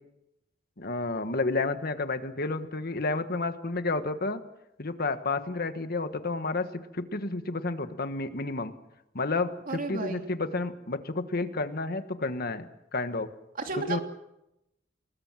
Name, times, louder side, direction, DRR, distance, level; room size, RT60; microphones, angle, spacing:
voice 1, 0.8-4.4 4.8-6.7 6.9-8.7 9.1-12.7 12.9-13.3 13.8-14.0, left 3 dB, 50° left, 10 dB, 1.4 m, -30 dB
voice 2, 9.7-10.2 13.6-14.0, right 3 dB, 45° right, 4 dB, 3.0 m, -32 dB
27.5 x 20.0 x 7.5 m, 0.88 s
head